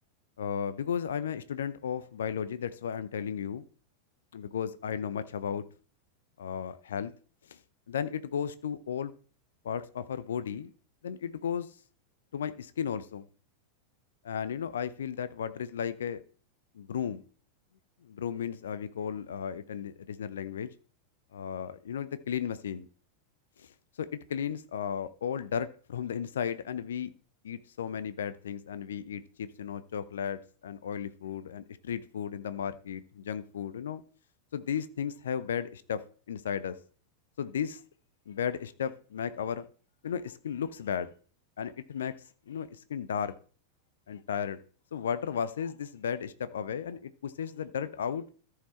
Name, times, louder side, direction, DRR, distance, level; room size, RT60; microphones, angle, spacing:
voice 1, 0.4-3.6 4.3-5.6 6.4-7.1 7.5-7.6 7.9-9.1 9.6-10.7 11.0-11.7 12.3-13.2 14.2-16.2 16.7-17.2 18.0-20.7 21.3-22.9 23.6-23.7 24.0-27.1 27.4-34.0 34.5-36.0 36.3-36.8 37.4-37.8 38.3-39.6 40.0-41.1 41.6-42.1 42.5-43.3 44.1-44.6 44.9-48.2, left 8 dB, 65° left, 14 dB, 0.6 m, -34 dB
13.5 x 4.8 x 4.4 m, 0.42 s
figure-of-eight pair, 90°, 0 cm